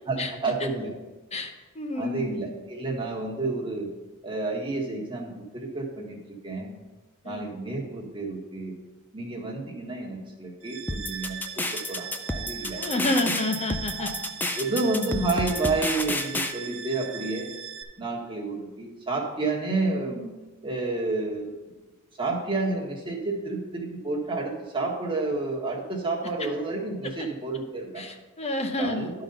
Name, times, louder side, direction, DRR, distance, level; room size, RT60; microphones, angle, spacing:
voice 1, 0.1-0.9 1.9-3.9 4.2-6.8 7.2-8.7 9.1-12.8 14.0-14.1 14.5-17.5 18.0-20.3 20.6-21.5 22.2-28.0 28.8-29.1, right 3 dB, 25° right, -2 dB, 1.5 m, -30 dB
voice 2, 1.3-2.3 7.2-7.5 12.7-14.1 26.4-26.5 27.2-27.3 28.0-29.1, left 2 dB, 30° left, 5 dB, 0.8 m, -29 dB
sound 1, 10.6-17.8, right 8 dB, 60° right, 1.0 m, -39 dB
sound 2, 10.9-16.5, left 2 dB, 10° left, 0.4 m, -30 dB
12.0 x 3.9 x 5.5 m, 1.1 s
head